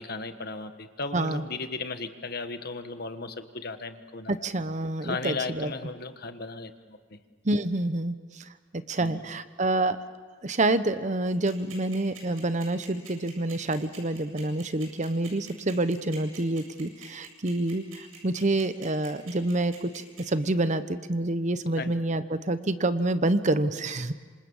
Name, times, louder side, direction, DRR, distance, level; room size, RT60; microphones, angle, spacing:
voice 1, 0.0-4.5 5.0-7.2 9.0-9.2 21.8-21.9, left 3 dB, 50° left, 8 dB, 1.4 m, -36 dB
voice 2, 1.1-1.4 4.3-5.7 7.4-10.0 10.4-24.1, right 2 dB, 35° right, 12 dB, 0.9 m, -27 dB
sound 1, 11.3-20.2, right 8 dB, 85° right, 7.8 m, -46 dB
26.5 x 26.5 x 7.2 m, 1.5 s
head